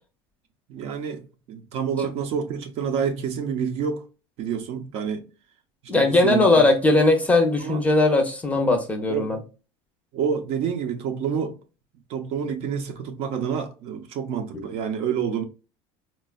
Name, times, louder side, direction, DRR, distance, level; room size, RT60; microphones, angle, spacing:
voice 1, 0.7-4.0 4.4-5.3 5.9-6.6 7.6-7.8 9.1-9.4 10.1-11.6 12.1-15.4, right 7 dB, 55° right, 0.6 m, -28 dB
voice 2, 5.9-9.4 14.5-14.6, left 2 dB, 10° left, 0.6 m, -19 dB
4.1 x 2.2 x 2.2 m
cardioid pair, 140°, 12 cm